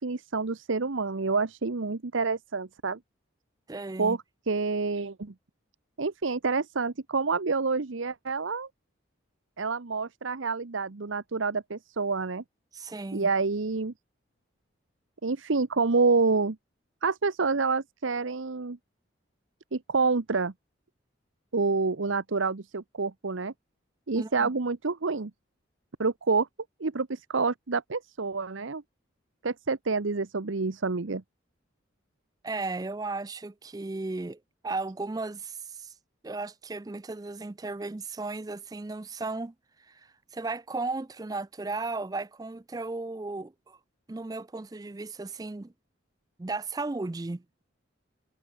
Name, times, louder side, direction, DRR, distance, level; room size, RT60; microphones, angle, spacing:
voice 1, 0.0-3.0 4.0-4.2 4.5-5.3 6.0-8.7 9.6-12.4 13.1-13.9 15.2-16.6 17.0-18.8 19.7-20.5 21.5-23.5 24.1-25.3 26.0-26.5 26.8-28.8 29.4-31.2, right 4 dB, 75° right, 0.9 m, -28 dB
voice 2, 3.7-4.2 12.7-13.3 24.2-24.5 32.4-34.4 34.6-35.9 36.2-39.5 39.8-43.8 44.1-45.7 46.4-47.6, right 3 dB, 20° right, 0.4 m, -35 dB
head